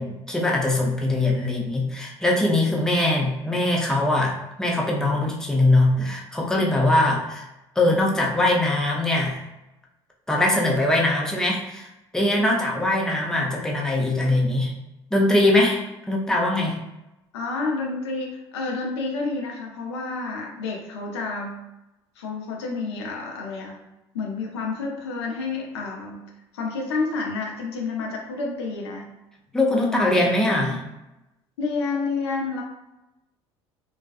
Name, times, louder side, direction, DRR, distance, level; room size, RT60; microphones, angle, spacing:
voice 1, 0.0-7.5 7.8-9.4 10.3-14.7 15.1-15.8 16.1-16.8 29.5-30.8, left 1 dB, 5° left, -2 dB, 0.6 m, -22 dB
voice 2, 17.3-21.6 22.2-23.8 24.1-26.2 26.5-29.1 29.7-30.1 30.7-30.8 31.6-32.6, left 4 dB, 75° left, 0 dB, 0.5 m, -29 dB
2.4 x 2.2 x 2.4 m, 0.94 s
figure-of-eight pair, 60°, 14 cm